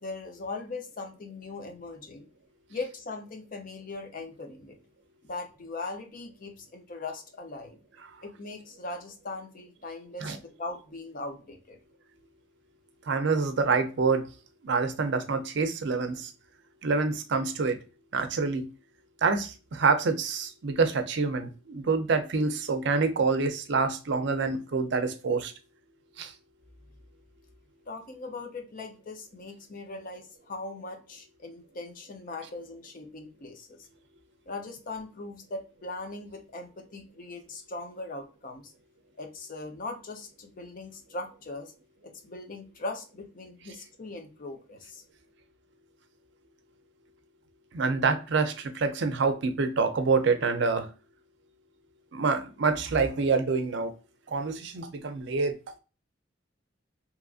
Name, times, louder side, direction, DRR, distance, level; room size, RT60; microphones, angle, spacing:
voice 1, 0.0-2.3 2.7-4.8 5.2-7.8 8.2-11.8 27.9-33.8 34.5-38.7 39.2-41.7 42.0-45.0, left 3 dB, 45° left, 0.6 m, -40 dB
voice 2, 13.1-14.2 14.6-16.3 16.8-17.8 18.1-18.7 19.2-25.5 26.2-26.3 47.7-50.9 52.1-53.9 54.3-55.5, right 4 dB, 65° right, 0.5 m, -26 dB
2.9 x 2.5 x 2.4 m
head